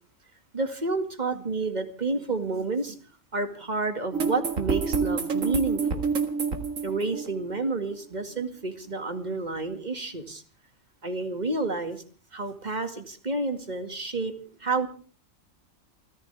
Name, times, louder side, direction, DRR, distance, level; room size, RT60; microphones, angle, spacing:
voice 1, 0.5-3.0 3.3-6.0 6.8-10.4 11.0-12.0 12.3-14.3 14.6-14.9, right 3 dB, 35° right, 7 dB, 2.2 m, -30 dB
sound 1, 4.1-7.9, right 5 dB, 85° right, 2.2 m, -28 dB
28.0 x 14.5 x 3.5 m, 0.39 s
omnidirectional pair, 1.3 m